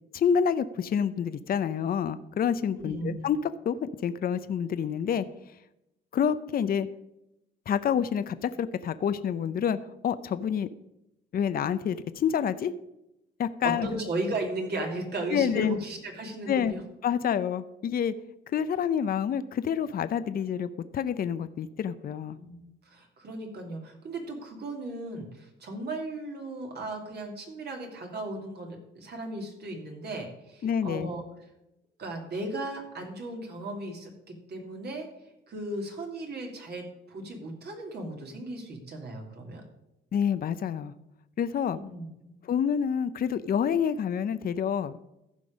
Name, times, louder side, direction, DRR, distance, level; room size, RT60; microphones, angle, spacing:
voice 1, 0.1-5.3 6.1-6.9 7.7-9.8 10.0-10.7 11.3-12.7 13.4-13.9 15.3-15.7 16.5-16.7 17.0-18.1 18.5-22.4 30.6-31.1 40.1-40.9 41.4-41.8 42.4-45.0, left 8 dB, 50° left, 13 dB, 0.6 m, -28 dB
voice 2, 2.8-3.3 13.6-16.8 22.4-31.2 32.0-35.1 35.5-39.6 41.7-42.3, right 2 dB, 55° right, 2 dB, 2.6 m, -36 dB
14.5 x 5.3 x 5.2 m, 0.88 s
cardioid pair, 90°, 20 cm